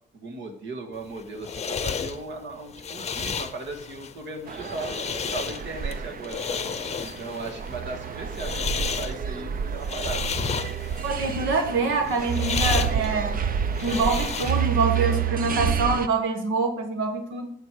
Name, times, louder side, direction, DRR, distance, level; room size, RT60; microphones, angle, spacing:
voice 1, 0.1-6.6 7.0-10.3 12.6-13.2, right 3 dB, 65° right, 3 dB, 1.9 m, -37 dB
sound 1, 1.0-14.8, left 6 dB, 35° left, 0.7 m, -32 dB
sound 2, 4.5-16.1, right 8 dB, 45° right, 0.7 m, -29 dB
voice 2, 11.0-13.4 13.8-17.5, right 3 dB, 85° right, 5 dB, 1.5 m, -25 dB
11.0 x 6.8 x 4.8 m, 0.66 s
cardioid pair, 90°, 20 cm